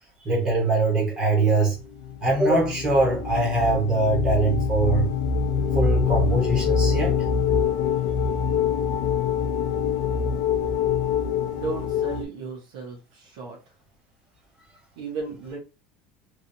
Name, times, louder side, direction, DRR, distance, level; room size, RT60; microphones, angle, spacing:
voice 1, 0.2-1.8 2.2-5.1 5.7-7.1, right 2 dB, 20° right, 1.1 m, -22 dB
sound 1, 1.7-12.3, left 6 dB, 70° left, 0.5 m, -24 dB
voice 2, 11.5-13.6 15.0-15.6, right 4 dB, 70° right, 0.9 m, -35 dB
3.0 x 2.7 x 2.7 m
cardioid pair, 180°, 4 cm